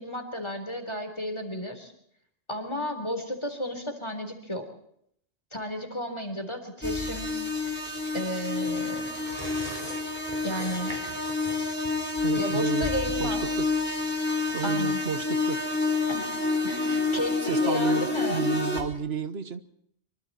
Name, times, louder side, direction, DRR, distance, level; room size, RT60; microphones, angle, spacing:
voice 1, 0.0-1.9 2.5-4.7 5.5-7.4 8.1-9.1 10.4-11.0 12.4-13.4 14.6-15.0 16.1-16.3 16.6-18.5, equal, 25° left, 6 dB, 3.9 m, -33 dB
sound 1, 6.8-18.8, left 3 dB, 10° left, 4.1 m, -28 dB
sound 2, 8.4-15.5 15.8-15.9, right 1 dB, 35° right, 5.3 m, -44 dB
voice 2, 12.2-12.9 13.2-13.7 14.5-15.6 17.4-19.6, right 6 dB, 80° right, 12 dB, 1.5 m, -32 dB
25.0 x 24.5 x 4.3 m, 0.70 s
omnidirectional pair, 1.1 m